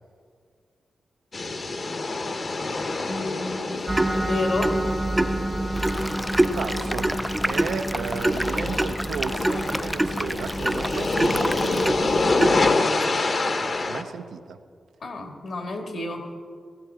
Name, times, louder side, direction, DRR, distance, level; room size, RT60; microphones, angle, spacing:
sound 1, 1.3-14.0, left 3 dB, 55° left, 1.1 m, -27 dB
voice 1, 3.1-3.9 4.2-4.8 15.0-16.4, left 2 dB, 75° left, 3 dB, 2.0 m, -30 dB
sound 2, 3.9-12.7, right 1 dB, 20° right, 0.7 m, -26 dB
sound 3, 5.8-11.9, equal, ahead, 0.4 m, -32 dB
voice 2, 6.5-12.9 13.9-14.6, right 6 dB, 85° right, 7 dB, 0.6 m, -34 dB
17.5 x 15.0 x 3.6 m, 2.1 s
cardioid pair, 55°, 0 cm